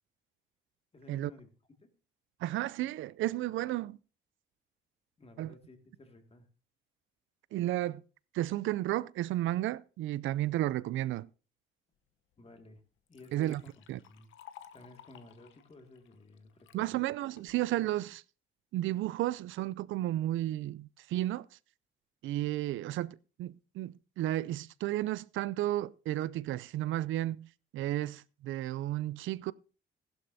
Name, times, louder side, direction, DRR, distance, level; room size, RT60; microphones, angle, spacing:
voice 1, 0.9-1.5 1.8-1.9 5.2-6.5 12.4-12.8 13.1-14.3 14.7-16.8, left 2 dB, 30° left, 2.1 m, -55 dB
voice 2, 2.4-4.0 5.4-5.5 7.5-8.0 8.3-11.3 13.3-13.6 13.9-14.0 16.7-18.2 18.7-21.5 22.2-29.5, right 14 dB, 80° right, 0.4 m, -33 dB
Liquid, 12.3-12.4 12.8-16.8 17.4-17.8, left 10 dB, 80° left, 0.9 m, -56 dB
15.5 x 11.5 x 2.7 m
cardioid pair, 90°, 20 cm